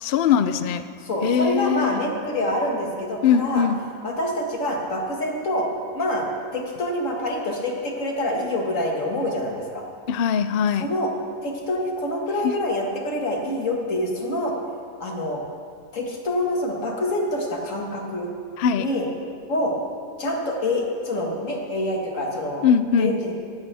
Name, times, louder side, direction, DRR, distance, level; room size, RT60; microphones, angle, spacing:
voice 1, 0.0-0.8 1.2-2.0 3.2-3.8 10.1-10.9 12.4-12.5 18.6-18.9 22.6-23.1, left 7 dB, 85° left, 11 dB, 0.5 m, -21 dB
voice 2, 1.0-3.6 4.0-5.7 5.9-6.3 6.5-9.8 10.8-11.1 11.4-14.5 15.0-15.4 15.9-18.3 18.8-19.1 19.5-19.7 20.2-22.7 23.0-23.3, left 1 dB, 55° left, 0 dB, 2.2 m, -26 dB
17.5 x 14.0 x 3.4 m, 2.2 s
omnidirectional pair, 1.6 m